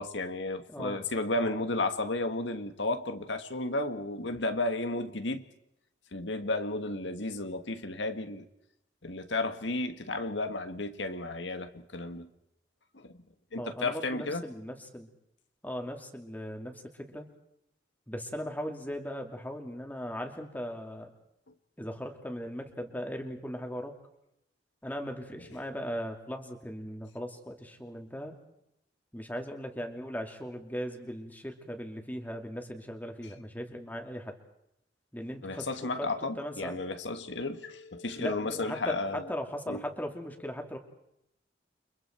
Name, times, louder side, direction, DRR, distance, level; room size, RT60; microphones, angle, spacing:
voice 1, 0.0-5.4 6.1-8.5 9.0-12.3 12.9-13.1 13.5-14.4 35.4-39.3 39.7-39.8, left 2 dB, 85° left, 1.8 m, -33 dB
voice 2, 0.7-1.0 1.4-1.6 13.6-15.1 15.6-17.3 18.1-21.1 21.8-24.0 24.8-28.4 29.1-34.4 35.1-36.1 36.4-36.8 38.2-40.8, equal, 10° left, 2.7 m, -38 dB
30.0 x 25.5 x 4.5 m
head